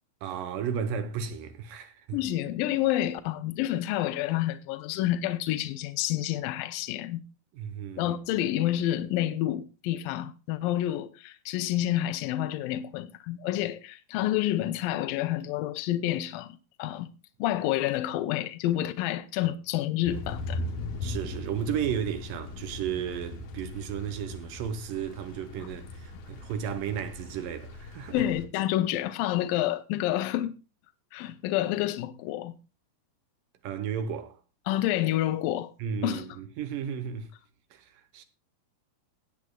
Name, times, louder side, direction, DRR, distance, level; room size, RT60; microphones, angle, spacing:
voice 1, 0.2-2.2 7.5-8.1 19.4-19.5 21.0-28.3 33.6-34.4 35.8-37.3 37.7-38.2, right 8 dB, 75° right, 2.5 m, -34 dB
voice 2, 2.1-7.2 8.0-17.1 17.4-20.6 25.6-25.7 28.1-30.6 31.1-32.5 34.7-35.7 36.0-36.3, left 13 dB, 80° left, 2.3 m, -29 dB
Thunder / Rain, 20.1-28.5, left 2 dB, 65° left, 2.3 m, -39 dB
19.0 x 8.6 x 2.3 m
omnidirectional pair, 4.2 m